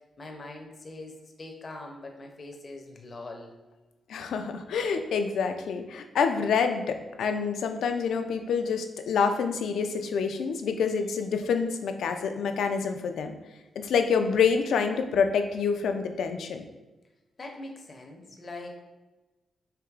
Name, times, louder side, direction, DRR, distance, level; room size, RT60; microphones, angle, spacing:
voice 1, 0.2-3.5 17.4-18.8, left 2 dB, 30° left, 2 dB, 0.5 m, -42 dB
voice 2, 4.1-13.4 13.8-16.7, left 6 dB, 90° left, 7 dB, 0.3 m, -27 dB
4.6 x 2.8 x 2.3 m, 1.1 s
wide cardioid pair, 165°, 0 cm